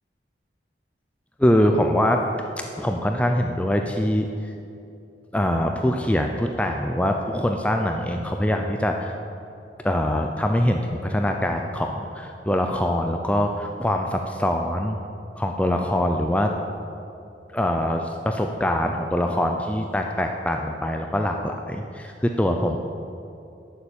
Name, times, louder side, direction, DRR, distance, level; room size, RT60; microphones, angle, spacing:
voice 1, 1.4-2.2 2.6-4.3 5.3-9.1 9.8-15.0 15.4-16.5 17.5-22.8, equal, 5° left, 3 dB, 0.5 m, -23 dB
11.5 x 6.9 x 8.6 m, 2.6 s
head